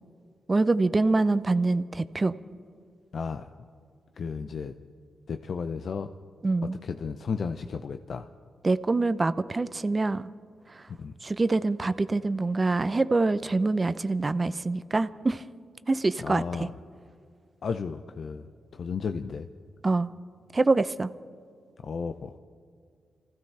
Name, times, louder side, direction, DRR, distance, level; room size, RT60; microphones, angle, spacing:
voice 1, 0.5-2.3 6.4-6.8 8.6-10.2 11.2-15.4 15.9-16.7 19.8-20.1 20.5-21.1, right 3 dB, 35° right, 14 dB, 0.6 m, -25 dB
voice 2, 3.1-3.5 4.2-4.7 5.3-6.1 6.6-8.3 11.0-11.1 16.2-16.7 17.6-18.4 18.7-19.5 21.8-22.4, left 5 dB, 65° left, 8 dB, 0.6 m, -33 dB
26.0 x 15.5 x 3.3 m, 2.2 s
cardioid pair, 55°, 0 cm